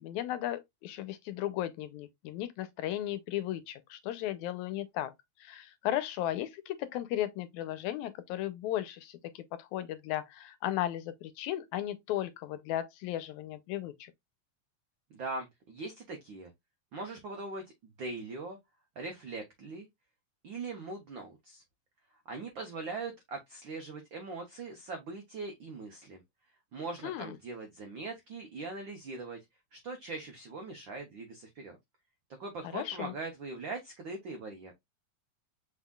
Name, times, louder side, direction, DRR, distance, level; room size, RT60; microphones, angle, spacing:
voice 1, 0.0-5.1 5.4-14.1 27.0-27.4 32.7-33.1, left 13 dB, 90° left, 2.0 m, -35 dB
voice 2, 15.1-16.5 16.9-17.6 18.0-18.6 19.0-19.9 20.4-21.6 22.3-26.2 26.7-29.4 29.7-31.8 32.4-34.7, right 3 dB, 85° right, 1.0 m, -41 dB
5.9 x 3.7 x 2.3 m
omnidirectional pair, 3.3 m